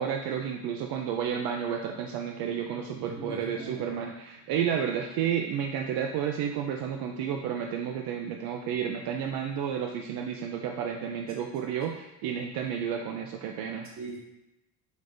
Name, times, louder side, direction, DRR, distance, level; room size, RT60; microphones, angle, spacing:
voice 1, 0.0-13.9, right 8 dB, 70° right, 3 dB, 0.6 m, -31 dB
voice 2, 2.7-3.9 4.9-5.0 14.0-14.2, right 2 dB, 35° right, -5 dB, 2.1 m, -42 dB
7.6 x 5.3 x 2.6 m, 0.96 s
cardioid pair, 180°, 37 cm